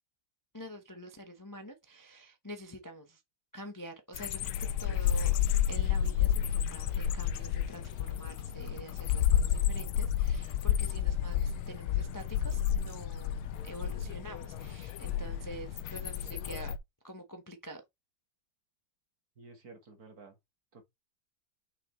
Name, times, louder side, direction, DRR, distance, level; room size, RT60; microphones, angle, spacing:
voice 1, 0.5-3.2 3.5-5.4 5.7-16.7 17.0-17.8, equal, 25° left, 0.4 m, -47 dB
sound 1, 4.1-16.8, left 9 dB, 85° left, 1.5 m, -31 dB
voice 2, 19.4-20.4 20.7-20.8, right 3 dB, 45° right, 2.3 m, -52 dB
6.1 x 5.8 x 3.1 m
omnidirectional pair, 2.3 m